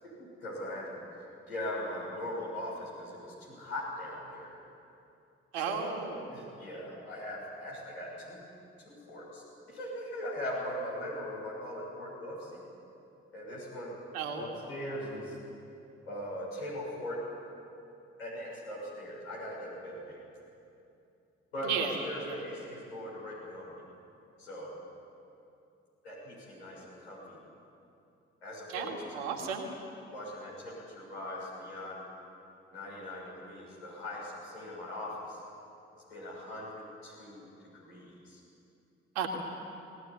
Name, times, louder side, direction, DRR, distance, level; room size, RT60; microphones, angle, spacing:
voice 1, 0.0-4.6 5.5-5.9 6.3-8.4 8.8-12.6 13.3-14.0 14.3-15.4 16.0-17.2 18.2-20.2 21.5-23.8 24.4-24.7 26.0-27.4 28.4-29.3 30.1-32.0 32.7-35.4 35.9-38.4, left 1 dB, 90° left, -6 dB, 6.9 m, -40 dB
voice 2, 5.5-6.2 14.1-14.5 21.6-21.9 22.3-22.4 28.7-29.7 39.1-39.3, right 6 dB, 80° right, 3 dB, 2.3 m, -34 dB
19.0 x 19.0 x 10.0 m, 2.7 s
figure-of-eight pair, 40°, 30 cm